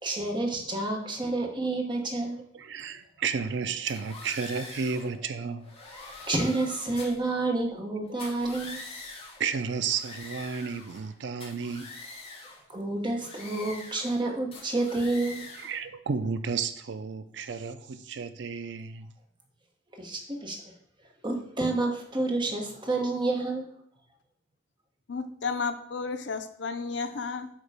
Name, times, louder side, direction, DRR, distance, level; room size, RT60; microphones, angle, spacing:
voice 1, 0.0-2.4 5.9-8.8 12.7-15.5 19.9-20.6 21.2-23.6, right 2 dB, 25° right, 1 dB, 1.0 m, -29 dB
voice 2, 2.5-5.7 9.4-12.0 15.6-19.1, right 5 dB, 70° right, 11 dB, 0.5 m, -32 dB
sound 1, 3.9-5.1 5.6-7.3 8.1-9.4 9.8-11.1 11.4-12.6 13.1-14.2 14.5-15.8, left 3 dB, 30° left, 1.5 m, -44 dB
voice 3, 25.1-27.5, left 4 dB, 70° left, 8 dB, 0.6 m, -32 dB
8.3 x 3.0 x 4.9 m, 0.62 s
head